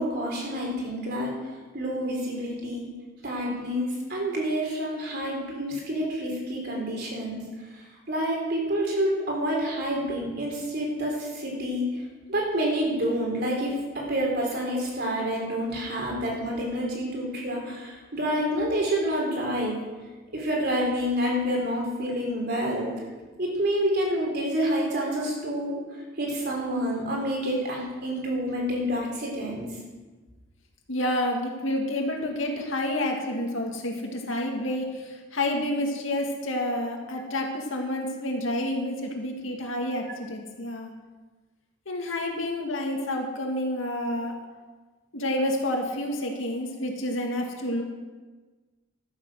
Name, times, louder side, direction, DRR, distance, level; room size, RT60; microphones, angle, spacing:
voice 1, 0.0-1.3 1.7-2.9 3.2-7.4 8.1-12.0 12.3-19.8 20.3-22.9 23.4-25.8 26.2-29.7, equal, 55° right, -2 dB, 3.9 m, -28 dB
voice 2, 30.9-40.9 41.9-44.3 45.1-47.8, left 1 dB, 80° left, 1 dB, 2.2 m, -29 dB
12.5 x 9.0 x 6.4 m, 1.3 s
head